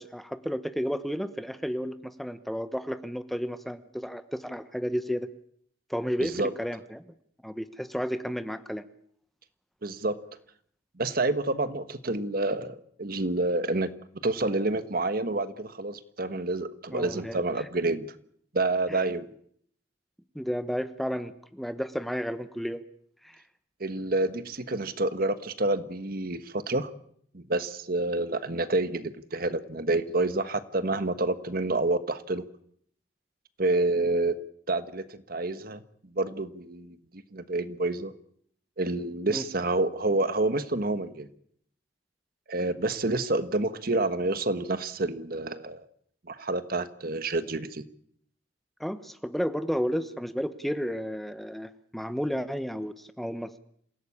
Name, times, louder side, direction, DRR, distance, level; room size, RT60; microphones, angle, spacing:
voice 1, 0.0-5.3 5.9-7.1 7.4-8.8 16.9-17.7 18.9-19.2 20.3-22.8 23.2-23.4 39.3-39.5 48.8-53.6, equal, ahead, 11 dB, 1.0 m, -32 dB
voice 2, 9.8-10.2 11.0-13.9 14.2-18.1 18.5-19.3 23.8-26.9 27.3-32.4 33.6-34.4 34.7-35.8 36.1-38.1 38.8-41.3 42.5-45.8 46.3-47.9, right 2 dB, 55° right, 12 dB, 1.4 m, -28 dB
27.0 x 17.0 x 8.6 m, 0.66 s
head